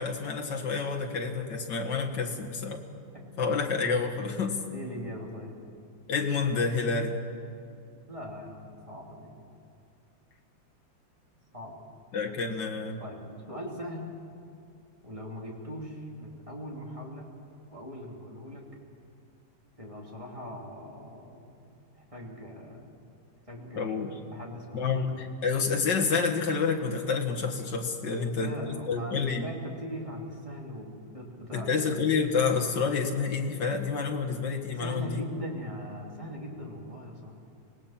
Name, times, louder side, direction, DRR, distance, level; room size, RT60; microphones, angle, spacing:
voice 1, 0.0-2.8 3.4-4.6 6.1-7.1 12.1-13.0 23.8-24.1 24.7-29.4 31.5-35.2, left 5 dB, 65° left, 1 dB, 2.3 m, -28 dB
voice 2, 4.7-5.5 8.1-9.3 11.5-11.8 13.0-13.2 13.5-14.1 15.0-17.3 17.7-18.6 19.8-22.9 23.5-25.0 28.1-31.8 34.7-37.4, equal, 15° right, -2 dB, 2.9 m, -40 dB
25.0 x 18.5 x 5.9 m, 2.5 s
omnidirectional pair, 2.2 m